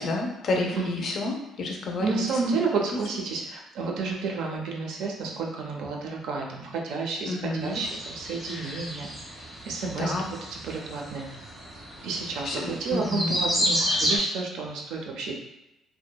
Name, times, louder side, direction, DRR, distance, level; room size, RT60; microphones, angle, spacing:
voice 1, 0.0-2.2 7.2-7.8 8.5-8.7 9.8-10.2 12.5-13.3, left 2 dB, 40° left, 1 dB, 0.4 m, -30 dB
voice 2, 2.0-9.1 9.6-10.1 10.5-11.4 12.0-15.4, right 4 dB, 75° right, 0 dB, 0.4 m, -31 dB
sound 1, 7.6-14.2, equal, 20° right, 0.6 m, -31 dB
2.6 x 2.1 x 2.2 m, 0.93 s
cardioid pair, 170°, 0 cm